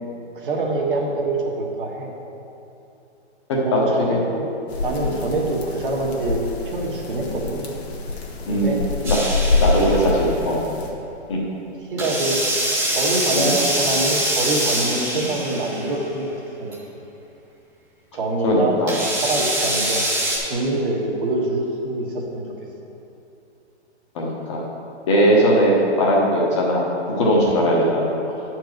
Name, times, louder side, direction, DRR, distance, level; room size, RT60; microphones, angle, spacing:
voice 1, 0.3-2.1 3.6-4.5 4.8-7.6 8.5-8.8 11.9-12.4 12.9-16.3 16.6-16.8 18.1-18.8 19.2-20.0 20.4-22.4 25.3-25.4, right 2 dB, 50° right, -1 dB, 1.5 m, -25 dB
voice 2, 3.5-3.8 4.1-4.2 5.1-5.2 8.5-8.7 9.0-9.2 9.6-10.6 11.3-11.4 13.3-13.6 15.1-15.2 18.4-18.9 24.1-24.6 25.1-26.8 27.2-28.1, equal, 25° left, -3 dB, 1.2 m, -19 dB
sound 1, 4.7-10.9, left 3 dB, 65° left, 1.3 m, -26 dB
sound 2, 9.0-10.2 12.0-16.0 16.7-16.8 18.9-20.4, right 1 dB, 10° right, 0.9 m, -24 dB
9.0 x 4.6 x 6.5 m, 2.8 s
hypercardioid pair, 175°, 35 cm